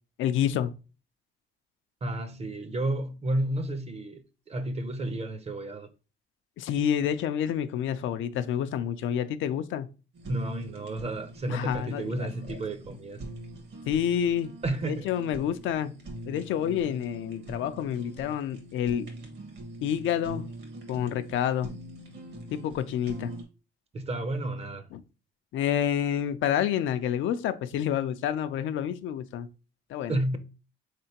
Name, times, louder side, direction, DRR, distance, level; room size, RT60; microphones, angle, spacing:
voice 1, 0.2-0.7 6.6-9.9 11.5-12.6 13.9-14.5 14.9-15.9 16.3-19.1 19.8-20.5 20.9-21.7 22.5-23.3 24.9-25.0 25.5-29.5 29.9-30.2, left 9 dB, 75° left, 0.4 m, -28 dB
voice 2, 2.0-5.9 10.3-13.2 14.6-15.1 23.9-24.9 30.1-30.4, right 1 dB, 30° right, 0.6 m, -31 dB
Fire, 10.1-23.4, right 1 dB, 60° right, 1.4 m, -43 dB
3.7 x 3.3 x 2.8 m
cardioid pair, 90°, 20 cm